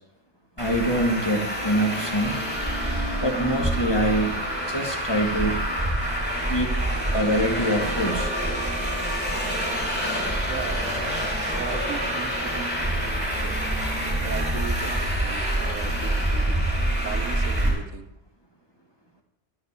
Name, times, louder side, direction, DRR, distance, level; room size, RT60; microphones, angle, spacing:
voice 1, 0.6-2.4 3.2-4.4 4.7-5.6 6.5-6.8 7.1-8.3, equal, 20° left, 1 dB, 1.6 m, -24 dB
Traffic noise roadway noise, 0.6-17.7, right 1 dB, 10° right, 3.7 m, -26 dB
voice 2, 10.5-10.9 11.5-13.7 14.2-16.6 17.0-18.1, right 7 dB, 85° right, 8 dB, 1.2 m, -37 dB
11.0 x 6.5 x 6.8 m, 0.86 s
omnidirectional pair, 1.3 m